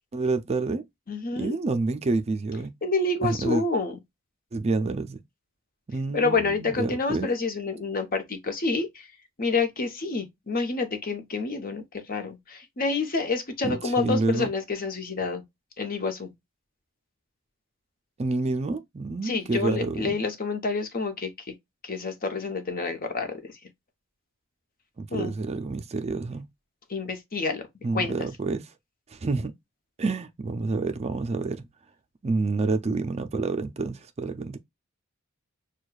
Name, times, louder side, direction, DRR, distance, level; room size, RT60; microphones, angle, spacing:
voice 1, 0.1-0.8 1.3-2.7 3.2-3.6 4.5-5.2 5.9-7.3 13.6-14.5 18.2-20.2 25.0-26.5 27.8-28.7 29.1-29.5 30.0-31.7 32.2-34.6, right 3 dB, 30° right, 0.4 m, -28 dB
voice 2, 1.1-1.5 2.8-4.0 6.1-9.1 9.4-15.4 15.8-16.3 19.2-21.3 21.8-23.4 25.1-25.3 26.9-27.7 27.9-28.1, left 3 dB, 45° left, 0.9 m, -28 dB
6.4 x 2.3 x 2.3 m
head